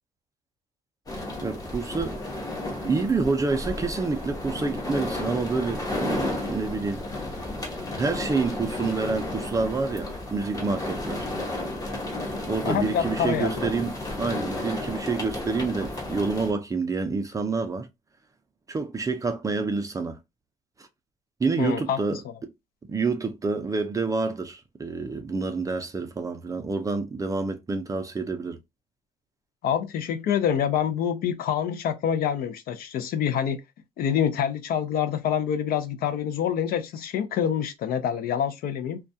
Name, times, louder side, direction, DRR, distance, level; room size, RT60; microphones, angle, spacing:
sound 1, 1.1-16.5, left 2 dB, 20° left, 0.8 m, -33 dB
voice 1, 1.4-2.2 2.8-7.0 8.0-11.3 12.5-13.9 14.2-17.9 18.7-20.2 21.4-22.2 22.9-28.6, right 4 dB, 20° right, 0.4 m, -28 dB
voice 2, 12.7-13.6 21.6-22.2 29.6-33.6 34.0-39.0, left 8 dB, 60° left, 0.5 m, -26 dB
2.3 x 2.2 x 2.6 m
cardioid pair, 110°, 17 cm